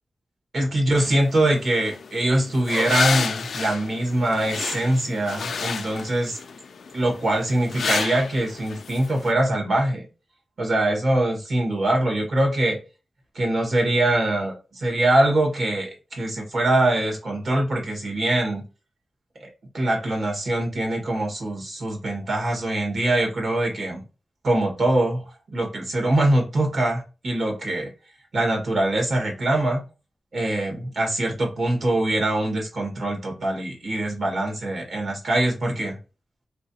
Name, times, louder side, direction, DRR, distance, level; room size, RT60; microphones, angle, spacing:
voice 1, 0.5-6.4 6.9-10.1 10.6-12.8 13.3-18.6 19.4-19.5 19.7-24.0 24.4-25.2 25.5-27.9 28.3-29.8 30.3-36.0, right 1 dB, 70° right, 0 dB, 1.5 m, -23 dB
sound 1, 1.0-9.3, left 5 dB, 80° left, 0.3 m, -31 dB
3.1 x 2.9 x 2.7 m, 0.32 s
cardioid pair, 55°, 0 cm